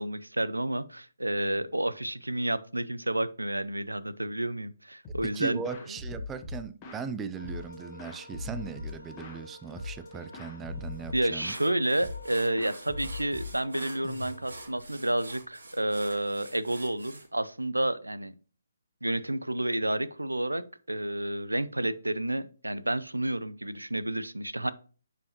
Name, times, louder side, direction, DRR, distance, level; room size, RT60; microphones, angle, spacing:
voice 1, 0.0-5.6 11.1-18.3 19.0-24.7, right 1 dB, 85° right, 0.5 m, -30 dB
sound 1, 5.0-5.4 5.6-7.1 7.4-9.4 9.8-10.1 10.3-11.7 12.0-12.3 12.6-14.7, left 3 dB, 20° left, 1.5 m, -40 dB
voice 2, 5.3-11.5, right 6 dB, 10° right, 0.4 m, -38 dB
sound 2, 7.4-14.7, left 1 dB, 80° left, 1.2 m, -50 dB
sound 3, 10.9-11.0 11.4-17.3, right 2 dB, 65° right, 2.1 m, -48 dB
10.5 x 4.9 x 3.0 m
figure-of-eight pair, 140°, 0 cm